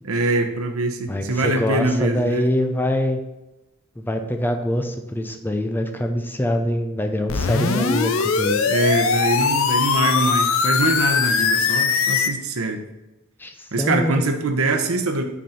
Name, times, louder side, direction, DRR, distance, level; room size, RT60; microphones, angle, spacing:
voice 1, 0.0-2.5 8.7-12.8 13.7-15.2, right 2 dB, 80° right, 6 dB, 0.8 m, -23 dB
voice 2, 1.1-3.2 4.0-8.6 13.4-14.2, left 1 dB, 10° left, 5 dB, 0.5 m, -24 dB
sound 1, 7.3-12.3, left 5 dB, 65° left, 0.5 m, -20 dB
6.1 x 4.3 x 5.6 m, 1.0 s
head